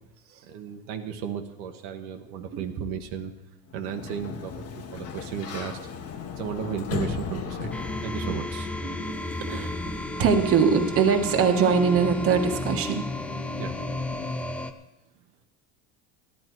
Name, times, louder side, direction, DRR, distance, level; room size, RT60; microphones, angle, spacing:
voice 1, 0.5-3.3 3.7-5.8 6.4-7.7 8.0-8.7 13.6-13.8, right 8 dB, 75° right, 5 dB, 1.3 m, -34 dB
Sliding door, 3.7-8.6, left 6 dB, 40° left, 1.2 m, -36 dB
sound 1, 6.0-14.4, left 11 dB, 70° left, 0.9 m, -42 dB
sound 2, 7.7-14.7, left 1 dB, 5° left, 0.4 m, -33 dB
voice 2, 8.8-9.8 10.2-13.0, right 6 dB, 35° right, 4 dB, 1.5 m, -23 dB
15.0 x 11.5 x 4.6 m, 0.96 s
cardioid pair, 140°, 37 cm